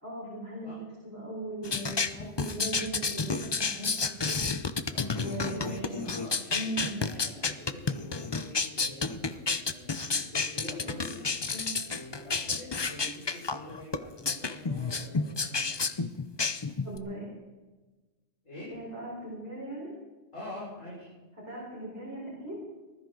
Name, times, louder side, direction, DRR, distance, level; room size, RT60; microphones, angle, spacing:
voice 1, 0.0-4.4 5.1-6.0 6.5-7.0 11.5-11.8 16.8-17.2 18.7-19.9 21.4-22.6, right 1 dB, 10° right, -6 dB, 4.5 m, -38 dB
sound 1, 1.6-17.0, left 4 dB, 35° left, 0.4 m, -31 dB
voice 2, 4.9-15.8 18.4-18.7 20.3-21.1, left 1 dB, 85° left, -8 dB, 6.1 m, -45 dB
19.5 x 13.5 x 3.9 m, 1.2 s
omnidirectional pair, 1.3 m